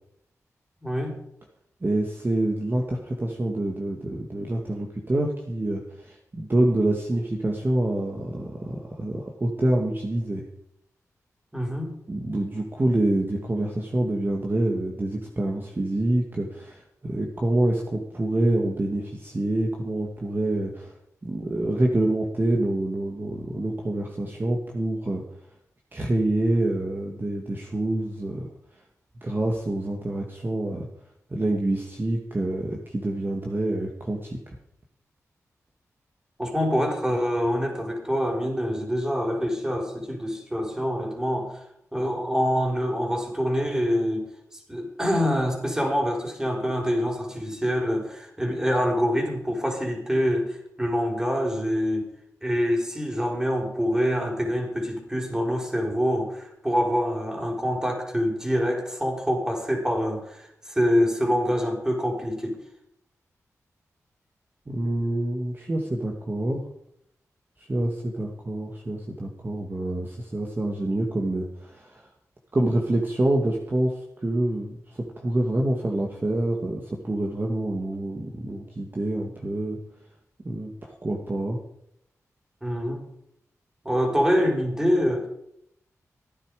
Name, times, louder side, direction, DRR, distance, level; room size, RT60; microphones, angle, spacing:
voice 1, 0.8-1.2 11.5-11.9 36.4-41.5 41.9-44.3 44.7-52.1 52.4-62.6 82.6-83.1 83.8-85.3, equal, 10° right, 1 dB, 4.9 m, -25 dB
voice 2, 1.8-10.4 12.1-20.9 21.2-25.2 25.9-28.5 29.2-30.9 31.3-34.6 64.7-66.6 67.6-72.1 72.5-79.8 80.4-81.6, right 1 dB, 35° right, 0 dB, 2.2 m, -26 dB
16.0 x 10.5 x 5.0 m, 0.74 s
cardioid pair, 60°, 6 cm